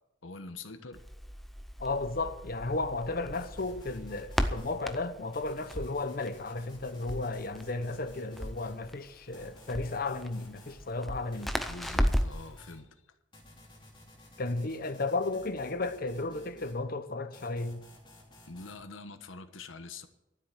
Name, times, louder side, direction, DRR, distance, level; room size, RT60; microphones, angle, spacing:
voice 1, 0.2-1.0 11.7-12.9 18.5-20.1, left 3 dB, 85° left, 1.2 m, -45 dB
Crackle, 0.9-12.5, equal, ahead, 0.6 m, -35 dB
voice 2, 1.8-11.5 14.4-17.8, left 3 dB, 50° left, 0.9 m, -34 dB
sound 1, 3.3-4.8 5.3-8.8 9.3-10.8 11.3-12.8 13.3-16.8 17.3-18.8, left 1 dB, 25° left, 3.2 m, -54 dB
13.0 x 7.7 x 9.1 m
head